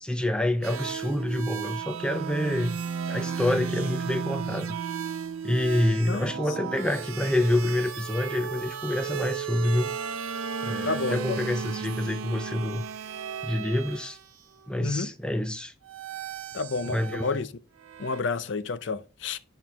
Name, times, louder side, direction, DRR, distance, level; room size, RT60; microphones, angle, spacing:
voice 1, 0.0-2.8 3.1-4.8 5.4-9.9 10.6-12.8 13.4-14.2 14.7-15.7 16.9-17.3, left 1 dB, 5° left, 0.4 m, -27 dB
sound 1, 0.6-14.2 15.9-17.4 17.8-18.2, right 7 dB, 80° right, 0.7 m, -34 dB
voice 2, 6.1-6.8 10.8-11.4 14.8-15.1 16.5-17.5 18.0-19.4, left 4 dB, 55° left, 0.5 m, -30 dB
8.1 x 4.4 x 3.4 m
head